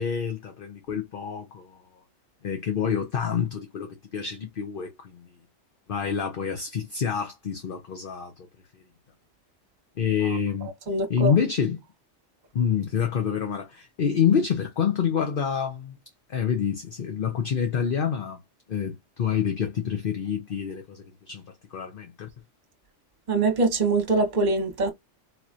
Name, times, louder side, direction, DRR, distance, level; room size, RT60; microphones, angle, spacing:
voice 1, 0.0-1.8 2.4-5.3 5.9-8.5 10.0-10.7 11.1-11.8 12.5-16.0 16.3-18.4 18.7-21.4 21.7-22.3, left 7 dB, 50° left, 0.9 m, -27 dB
voice 2, 10.9-11.3 23.3-24.9, right 3 dB, 40° right, 1.2 m, -23 dB
4.2 x 2.9 x 2.5 m
omnidirectional pair, 1.3 m